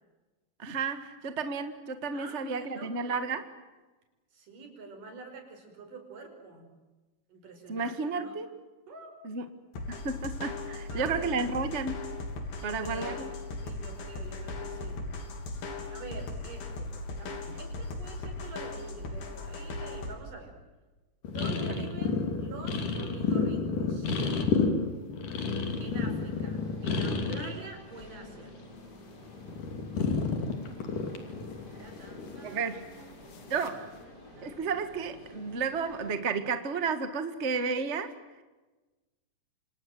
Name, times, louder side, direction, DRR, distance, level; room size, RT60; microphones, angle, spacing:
voice 1, 0.6-3.5 7.7-8.5 9.2-9.5 9.9-12.0 12.6-13.3 17.5-17.6 21.8-21.9 32.4-32.9 33.5-33.9 34.4-38.1, right 4 dB, 40° right, 9 dB, 1.0 m, -32 dB
voice 2, 2.1-3.3 4.3-6.7 7.3-8.4 8.9-9.2 10.9-11.3 12.5-13.2 13.6-15.0 15.9-20.6 21.2-24.1 25.8-28.6 31.8-33.1 34.1-34.8, right 3 dB, 60° right, 4 dB, 6.6 m, -46 dB
sound 1, 9.7-20.1, left 2 dB, 90° left, 5.1 m, -38 dB
sound 2, 21.2-27.6 27.9-28.9 29.2-32.8 33.5-33.9, left 4 dB, 60° left, 4.2 m, -31 dB
sound 3, 25.3-36.1, left 1 dB, 25° left, 6.7 m, -52 dB
28.5 x 26.0 x 7.8 m, 1.2 s
omnidirectional pair, 4.2 m